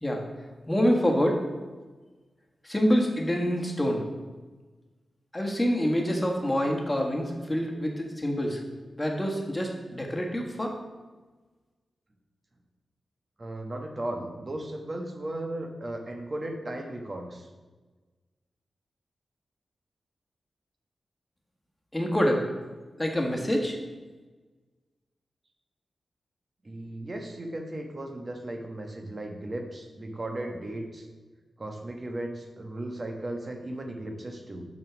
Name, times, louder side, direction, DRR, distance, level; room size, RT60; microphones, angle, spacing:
voice 1, 0.7-1.4 2.6-4.0 5.3-8.6 8.9-10.7 21.9-22.5 23.0-23.8, equal, 15° left, 1 dB, 1.6 m, -26 dB
voice 2, 13.4-17.5 26.6-31.1 31.6-34.7, right 1 dB, 40° right, 3 dB, 1.2 m, -36 dB
6.3 x 5.4 x 6.2 m, 1.3 s
cardioid pair, 75°, 0 cm